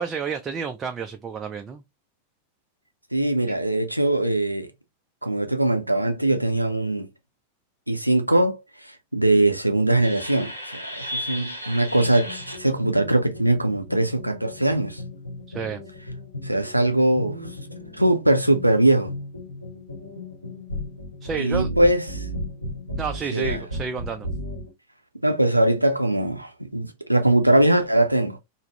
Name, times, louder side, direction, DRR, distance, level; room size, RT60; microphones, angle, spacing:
voice 1, 0.0-1.8 15.5-15.8 21.2-21.7 23.0-24.3, right 6 dB, 20° right, 0.4 m, -30 dB
voice 2, 3.1-4.7 5.2-7.1 7.9-8.6 9.1-15.0 16.4-17.4 18.0-19.1 21.4-22.3 23.3-23.6 25.2-28.4, right 1 dB, 90° right, 0.5 m, -21 dB
sound 1, 10.0-24.7, left 1 dB, 85° left, 0.8 m, -35 dB
3.5 x 2.0 x 2.8 m
figure-of-eight pair, 90°, 0 cm